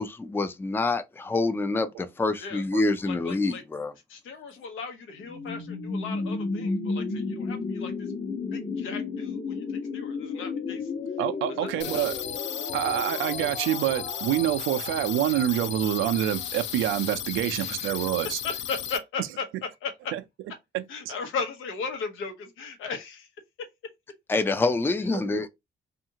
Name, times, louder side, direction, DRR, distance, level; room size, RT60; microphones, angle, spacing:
voice 1, 0.0-3.9 24.3-25.5, left 3 dB, 10° left, 0.4 m, -26 dB
voice 2, 3.0-3.6 4.1-8.1 8.5-9.6 9.9-10.9 11.5-12.1 17.6-17.7 18.4-19.4 19.8-20.1 20.9-23.3, left 5 dB, 85° left, 0.9 m, -36 dB
sound 1, 5.2-17.0, left 4 dB, 40° left, 1.0 m, -34 dB
voice 3, 11.2-12.3 12.7-18.4 20.1-20.2 20.7-21.1 25.1-25.4, right 12 dB, 90° right, 0.4 m, -27 dB
sound 2, 11.8-19.0, left 9 dB, 65° left, 0.5 m, -35 dB
2.7 x 2.5 x 2.7 m
cardioid pair, 90°, 20 cm